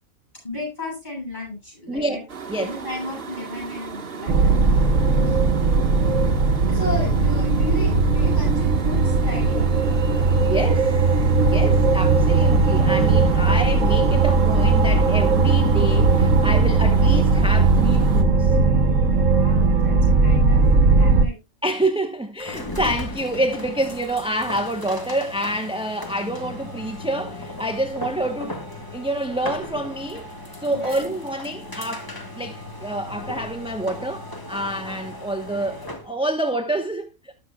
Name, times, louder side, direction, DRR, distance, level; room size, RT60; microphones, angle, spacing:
voice 1, 0.4-2.2 2.6-4.5 5.2-5.4 6.7-9.6 19.3-21.4 30.7-31.1, left 1 dB, 30° left, 7.7 m, -34 dB
voice 2, 1.9-2.8 10.4-10.9 11.4-18.6 21.6-28.6 28.9-30.3 30.6-37.3, right 1 dB, 5° right, 0.7 m, -27 dB
sound 1, 2.3-18.2, right 6 dB, 45° right, 1.4 m, -36 dB
sound 2, 4.3-21.3, right 3 dB, 65° right, 1.4 m, -18 dB
sound 3, 22.4-36.1, left 2 dB, 15° left, 1.5 m, -36 dB
19.0 x 6.7 x 2.2 m
omnidirectional pair, 1.4 m